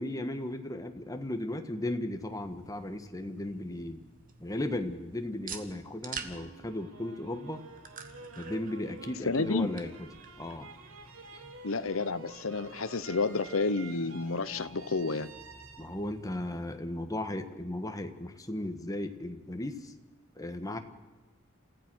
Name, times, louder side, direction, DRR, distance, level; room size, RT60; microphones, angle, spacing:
voice 1, 0.0-4.0 4.4-7.6 8.3-10.1 10.4-10.7 11.3-11.4 15.8-19.9 20.3-20.8, left 1 dB, 15° left, 1.5 m, -36 dB
sound 1, 2.2-16.4, right 5 dB, 45° right, 1.7 m, -50 dB
sound 2, 6.1-17.1, right 3 dB, 80° right, 2.0 m, -50 dB
voice 2, 9.2-9.7 11.6-15.3, left 3 dB, 75° left, 1.0 m, -30 dB
28.0 x 15.0 x 6.3 m
head